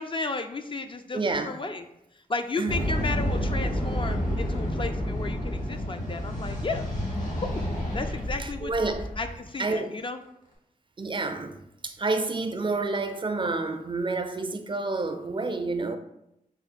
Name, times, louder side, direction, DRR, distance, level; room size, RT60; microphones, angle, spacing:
voice 1, 0.0-1.9 2.3-6.9 7.4-8.7 9.2-10.2, left 3 dB, 35° left, 0.3 m, -33 dB
voice 2, 1.1-1.5 2.6-2.8 8.4-9.0 9.6-9.9 11.0-16.0, right 3 dB, 35° right, 0.4 m, -29 dB
sound 1, 2.7-9.4, equal, 65° left, 1.4 m, -29 dB
3.6 x 2.2 x 4.2 m
cardioid pair, 55°, 15 cm